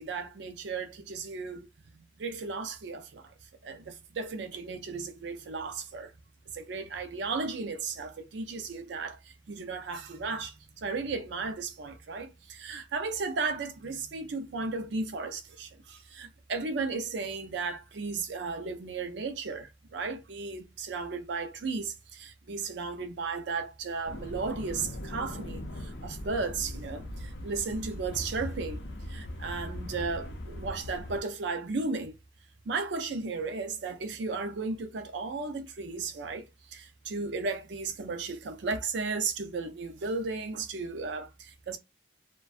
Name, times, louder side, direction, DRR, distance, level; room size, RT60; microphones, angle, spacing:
voice 1, 0.0-1.7 2.2-3.3 3.6-6.1 6.5-32.2 32.7-41.8, right 4 dB, 70° right, 0.4 m, -35 dB
sound 1, 24.1-31.2, left 1 dB, 65° left, 0.5 m, -40 dB
2.5 x 2.1 x 2.4 m
head